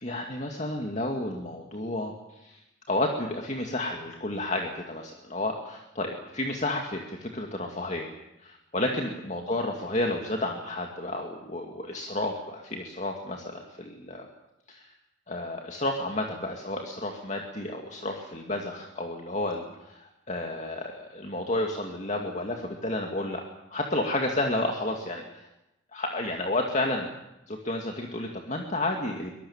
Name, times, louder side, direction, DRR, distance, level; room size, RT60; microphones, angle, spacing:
voice 1, 0.0-2.1 2.4-2.6 2.9-8.1 8.4-14.3 14.7-14.9 15.3-23.4 23.7-25.5 25.9-27.1 27.5-29.3, left 1 dB, 35° left, 2 dB, 2.3 m, -31 dB
24.0 x 21.0 x 7.4 m, 0.90 s
head